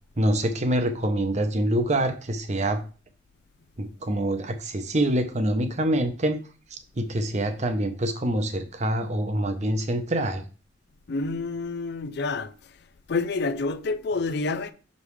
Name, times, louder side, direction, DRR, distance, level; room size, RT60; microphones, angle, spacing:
voice 1, 0.2-2.8 3.8-6.4 6.7-10.4, right 1 dB, 40° right, 0.8 m, -25 dB
voice 2, 11.1-12.6 13.1-14.7, left 3 dB, 65° left, 0.5 m, -28 dB
6.2 x 5.2 x 3.2 m
head